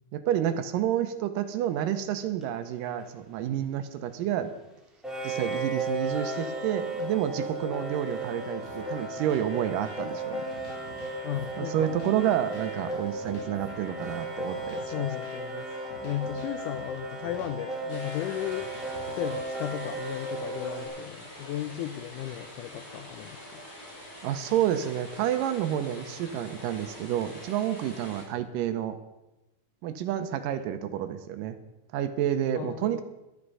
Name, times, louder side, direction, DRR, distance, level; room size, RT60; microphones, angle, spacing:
voice 1, 0.1-4.5 5.2-10.5 11.6-14.9 24.2-29.0 29.8-31.6 31.9-33.0, right 10 dB, 75° right, 10 dB, 2.2 m, -29 dB
sound 1, 2.4-2.5 5.0-20.9, right 1 dB, ahead, 1.7 m, -35 dB
sound 2, 8.6-19.4, left 2 dB, 65° left, 4.3 m, -49 dB
voice 2, 11.2-11.9 14.8-15.7 16.0-18.7 19.0-23.6 32.5-33.0, left 12 dB, 85° left, 11 dB, 1.8 m, -35 dB
sound 3, 17.9-28.2, left 1 dB, 25° left, 3.3 m, -46 dB
12.0 x 10.0 x 5.4 m, 0.97 s
omnidirectional pair, 4.2 m